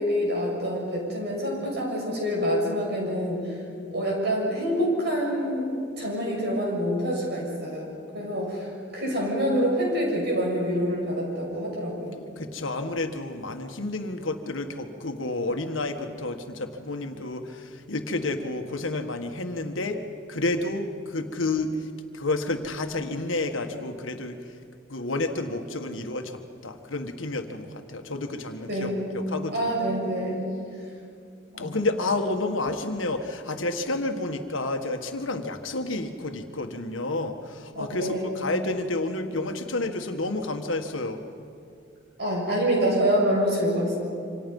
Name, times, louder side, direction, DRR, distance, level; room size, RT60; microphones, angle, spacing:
voice 1, 0.0-3.6 3.9-12.2 28.7-29.0 29.5-30.4 31.5-31.8 37.8-38.3 42.2-43.9, equal, 55° right, -2 dB, 7.2 m, -26 dB
voice 2, 12.4-20.0 20.3-21.9 22.1-24.4 24.9-29.8 31.6-41.2, left 2 dB, 80° left, 6 dB, 1.6 m, -30 dB
27.5 x 26.0 x 5.5 m, 2.4 s
head